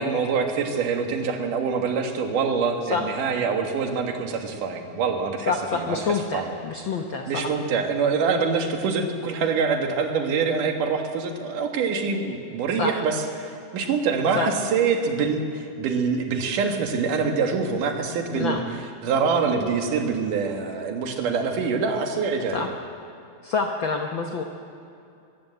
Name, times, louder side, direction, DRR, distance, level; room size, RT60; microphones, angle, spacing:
voice 1, 0.0-6.6 7.3-18.6 19.0-22.7, right 5 dB, 85° right, 4 dB, 3.1 m, -25 dB
voice 2, 5.5-7.5 12.8-12.9 14.3-14.5 18.4-18.6 22.5-22.7 23.4-24.4, left 5 dB, 70° left, 3 dB, 1.1 m, -27 dB
21.0 x 15.5 x 8.0 m, 2.6 s
omnidirectional pair, 3.6 m